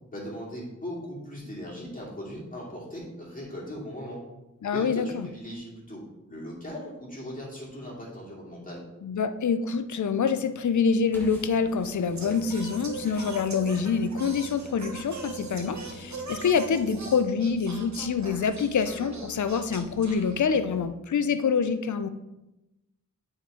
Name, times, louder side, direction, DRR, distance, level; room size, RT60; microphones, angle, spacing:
voice 1, 0.1-4.2 4.7-8.8, equal, 25° left, -6 dB, 2.6 m, -38 dB
voice 2, 4.6-5.3 9.0-22.1, left 6 dB, 75° left, 11 dB, 0.5 m, -26 dB
sound 1, 11.1-16.9, left 1 dB, 5° left, 1.5 m, -46 dB
Singing, 12.1-20.9, right 3 dB, 65° right, 1.1 m, -41 dB
9.0 x 4.2 x 3.8 m, 0.97 s
wide cardioid pair, 80°, 30 cm